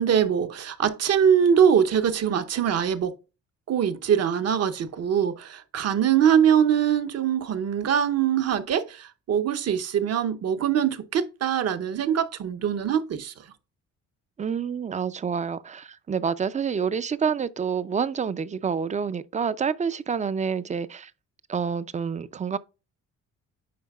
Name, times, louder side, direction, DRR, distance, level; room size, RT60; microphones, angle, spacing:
voice 1, 0.0-3.2 3.7-13.3, right 8 dB, 55° right, 0.8 m, -23 dB
voice 2, 14.4-21.1 21.5-22.6, right 6 dB, 25° right, 0.4 m, -28 dB
9.4 x 4.6 x 2.3 m
cardioid pair, 90°, 30 cm